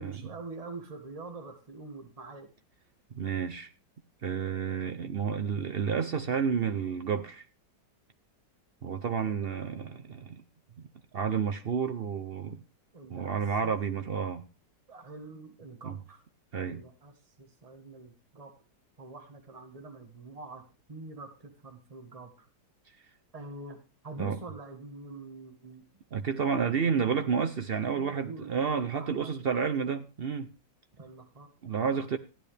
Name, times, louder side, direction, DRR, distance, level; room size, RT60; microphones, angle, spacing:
voice 1, 0.0-2.5 9.2-9.5 12.9-13.7 14.9-16.2 16.7-17.1 17.4-18.5 19.0-20.6 20.9-22.5 23.3-25.8 27.7-30.0 30.9-31.5, right 2 dB, 20° right, 1.9 m, -45 dB
voice 2, 3.1-3.7 4.2-7.4 8.8-10.4 11.1-12.6 13.1-14.4 15.8-16.0 16.5-16.8 24.2-24.4 26.1-30.5 31.6-32.2, right 6 dB, 80° right, 0.5 m, -30 dB
15.0 x 10.5 x 3.4 m
omnidirectional pair, 1.9 m